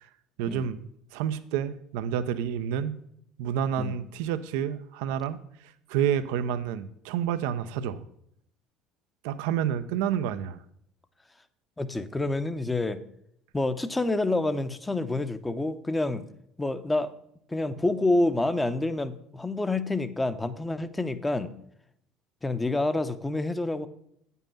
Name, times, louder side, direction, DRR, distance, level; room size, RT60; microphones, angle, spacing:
voice 1, 0.4-0.9 1.1-3.0 3.4-8.0 9.2-10.6, right 9 dB, 75° right, 12 dB, 0.5 m, -29 dB
voice 2, 11.8-13.0 13.5-16.3 16.6-17.1 17.5-21.5 22.4-23.9, left 2 dB, 15° left, 11 dB, 0.8 m, -28 dB
8.9 x 5.5 x 5.6 m, 0.72 s
hypercardioid pair, 70°, 0 cm